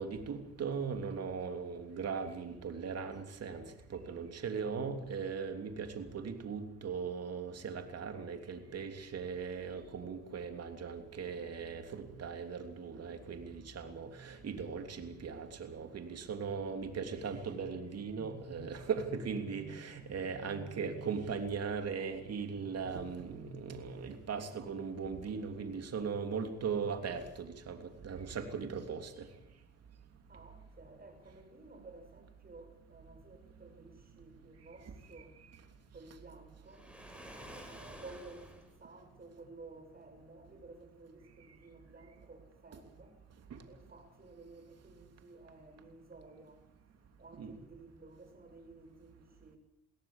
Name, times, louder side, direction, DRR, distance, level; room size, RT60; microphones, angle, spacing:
voice 1, 0.0-29.3 34.8-35.5 42.7-42.8 43.5-43.6 47.4-47.6, right 5 dB, 55° right, 6 dB, 3.2 m, -39 dB
voice 2, 19.9-20.3 30.3-35.3 35.9-36.8 37.7-43.2 43.6-46.6 47.2-49.6, right 3 dB, 30° right, 6 dB, 6.5 m, -54 dB
Waves surf, 36.7-38.8, equal, 5° right, 5.1 m, -50 dB
22.0 x 17.5 x 7.4 m, 0.83 s
cardioid pair, 90°, 30 cm